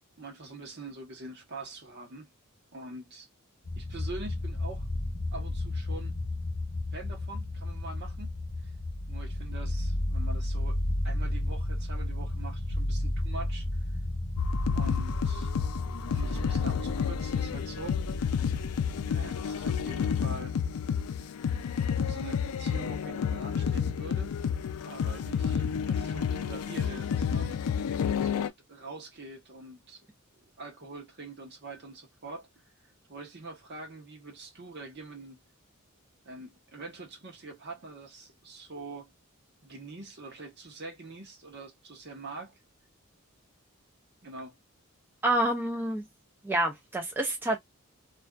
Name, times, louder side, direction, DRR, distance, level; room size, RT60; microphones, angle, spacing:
voice 1, 0.2-2.3 2.7-3.3 3.8-4.9 5.3-6.1 6.9-8.3 8.6-8.7 9.1-10.8 11.0-13.7 14.7-15.5 16.0-18.0 19.1-20.6 22.0-24.4 24.8-27.6 28.2-30.1 30.4-32.5 33.1-35.4 36.2-39.1 39.6-42.6 44.2-44.5, right 3 dB, 50° right, 0.9 m, -44 dB
sound 1, 3.6-20.2, left 1 dB, 50° left, 0.8 m, -33 dB
sound 2, 14.4-28.5, left 7 dB, 90° left, 0.3 m, -30 dB
voice 2, 45.2-46.0 46.4-47.6, right 1 dB, 10° right, 0.4 m, -28 dB
2.5 x 2.3 x 2.2 m
head